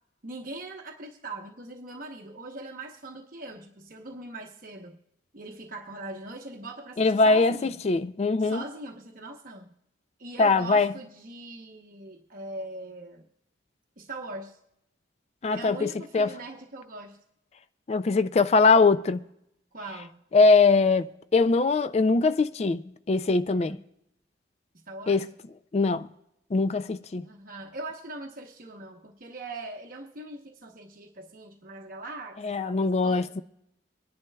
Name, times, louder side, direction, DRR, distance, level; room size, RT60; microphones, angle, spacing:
voice 1, 0.2-5.0 5.3-7.7 8.4-9.7 10.2-13.3 14.0-14.6 15.5-17.2 19.7-20.1 23.5-23.8 24.7-25.3 27.2-33.3, right 2 dB, 45° right, 0.9 m, -41 dB
voice 2, 7.0-8.6 10.4-10.9 15.4-16.3 17.9-19.2 20.3-22.8 23.1-23.8 25.1-25.3 25.7-26.1 26.5-27.2 32.4-33.4, left 3 dB, 35° left, 0.3 m, -22 dB
23.5 x 10.5 x 2.3 m
head